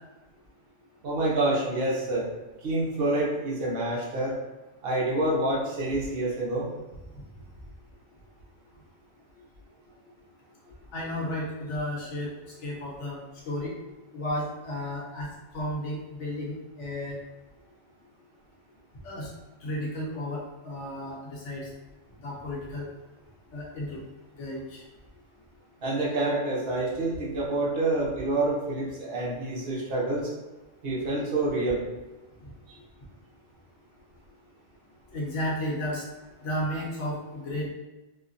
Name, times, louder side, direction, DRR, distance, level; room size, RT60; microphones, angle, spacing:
voice 1, 1.0-2.3 2.6-4.3 4.8-6.7 25.8-30.3 30.8-31.8, right 2 dB, 55° right, -5 dB, 1.0 m, -27 dB
voice 2, 10.9-13.2 13.5-13.7 14.1-17.2 19.0-19.3 19.6-21.7 22.2-22.9 23.5-24.0 24.3-24.8 35.1-36.0 36.4-37.7, left 1 dB, 75° left, -4 dB, 1.2 m, -33 dB
3.3 x 2.2 x 2.5 m, 1.1 s
omnidirectional pair, 1.3 m